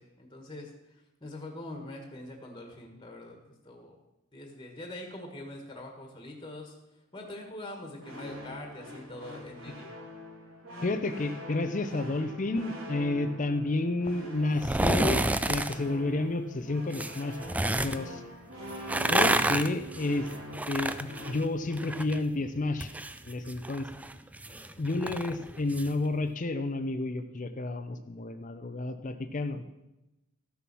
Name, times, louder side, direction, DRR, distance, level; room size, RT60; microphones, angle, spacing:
voice 1, 0.0-3.4 3.6-3.9 4.3-6.7 7.1-9.9 24.5-24.9, left 1 dB, 20° left, 2 dB, 1.6 m, -44 dB
sound 1, 8.0-21.3, left 1 dB, 65° right, 2.6 m, -44 dB
voice 2, 10.8-17.5 17.8-18.2 19.1-20.3 20.7-22.9 23.2-23.9 24.8-29.6, left 2 dB, 35° left, 8 dB, 0.6 m, -31 dB
sound 2, 14.5-15.8 16.9-18.0 18.7-22.2 22.5-25.9 26.3-26.4, right 1 dB, 5° right, 0.3 m, -29 dB
13.5 x 6.9 x 6.1 m, 0.94 s
head